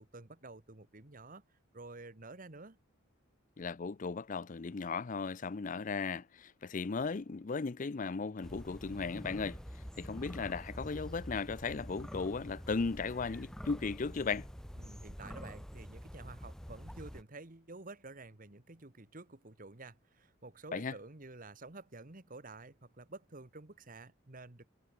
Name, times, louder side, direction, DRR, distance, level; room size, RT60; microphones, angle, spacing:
voice 1, 0.0-1.4 1.7-2.8 14.8-24.7, right 3 dB, 40° right, 1.5 m, -50 dB
voice 2, 3.6-14.5 20.7-20.9, left 4 dB, 40° left, 0.5 m, -36 dB
sound 1, 8.4-17.2, equal, 5° left, 1.2 m, -47 dB
head